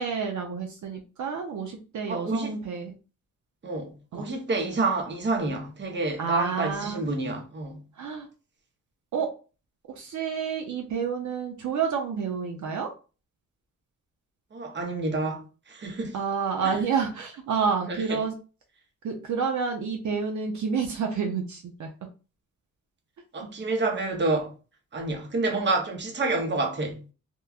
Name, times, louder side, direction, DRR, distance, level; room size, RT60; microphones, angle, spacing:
voice 1, 0.0-2.9 4.1-4.3 6.2-7.0 8.0-8.3 9.1-9.3 10.0-12.9 16.1-18.3 19.0-21.9 23.4-23.5, right 6 dB, 70° right, 0.5 m, -29 dB
voice 2, 2.1-2.6 3.6-7.8 14.5-16.2 16.6-16.8 17.9-18.2 23.3-24.5 24.9-27.0, right 3 dB, 35° right, 0.7 m, -28 dB
3.0 x 2.2 x 2.3 m
wide cardioid pair, 130°, 31 cm